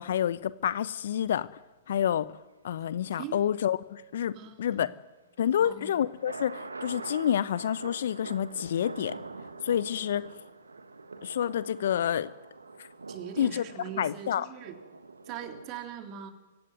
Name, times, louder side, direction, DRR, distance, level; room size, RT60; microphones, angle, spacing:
voice 1, 0.0-1.5 1.9-2.4 2.6-4.9 5.4-9.2 9.6-10.3 11.2-12.3 12.8-12.9 13.4-13.6 14.0-14.5, left 9 dB, 60° left, 17 dB, 0.9 m, -28 dB
voice 2, 4.3-4.9 5.6-6.0 13.1-14.8 15.3-16.3, right 9 dB, 35° right, 6 dB, 3.6 m, -41 dB
sound 1, 5.5-15.7, right 3 dB, 85° right, 1.4 m, -45 dB
27.0 x 16.5 x 9.6 m, 1.2 s
figure-of-eight pair, 110°, 0 cm